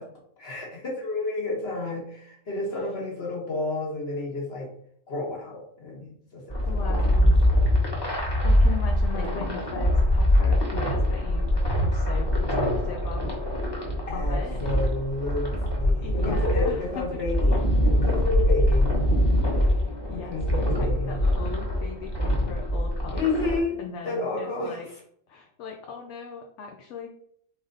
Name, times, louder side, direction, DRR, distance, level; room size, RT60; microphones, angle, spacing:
voice 1, 0.4-4.7 5.1-6.4 6.7-6.8 7.2-7.7 9.1-9.5 14.1-18.9 20.1-21.2 23.1-25.0, left 2 dB, 55° left, -2 dB, 1.6 m, -31 dB
sound 1, 6.5-23.6, left 1 dB, 20° left, 1.1 m, -23 dB
voice 2, 6.6-7.4 8.4-13.4 14.1-14.6 16.0-17.0 19.5-20.4 20.7-23.3 23.8-24.9 25.3-27.1, left 5 dB, 75° left, 2 dB, 1.0 m, -39 dB
3.9 x 3.5 x 3.9 m, 0.66 s
omnidirectional pair, 1.3 m